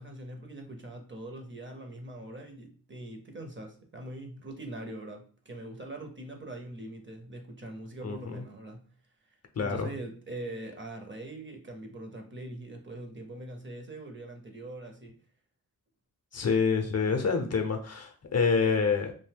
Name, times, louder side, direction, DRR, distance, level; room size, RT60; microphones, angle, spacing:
voice 1, 0.0-8.8 9.2-15.2, right 1 dB, 35° right, 0.6 m, -42 dB
voice 2, 9.6-9.9 16.3-19.1, left 5 dB, 45° left, 0.5 m, -27 dB
2.6 x 2.2 x 3.3 m
cardioid pair, 75°, 35 cm